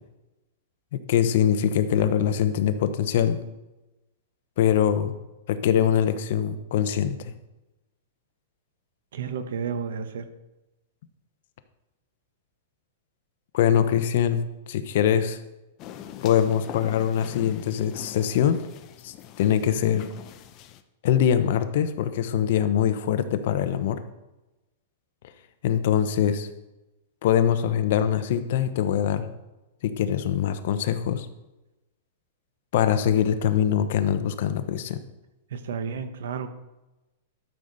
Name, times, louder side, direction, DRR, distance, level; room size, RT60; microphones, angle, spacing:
voice 1, 0.9-3.4 4.6-5.1 5.5-7.3 13.5-14.4 14.7-15.4 16.2-18.7 19.0-20.1 21.0-24.0 25.6-26.5 27.2-29.3 29.8-31.3 32.7-35.0, left 9 dB, 55° left, 10 dB, 0.8 m, -23 dB
voice 2, 9.1-10.3 35.5-36.5, right 6 dB, 75° right, 10 dB, 1.0 m, -32 dB
sound 1, 15.8-20.8, left 10 dB, 30° left, 0.5 m, -42 dB
12.0 x 6.6 x 4.1 m, 1.0 s
supercardioid pair, 165°, 0 cm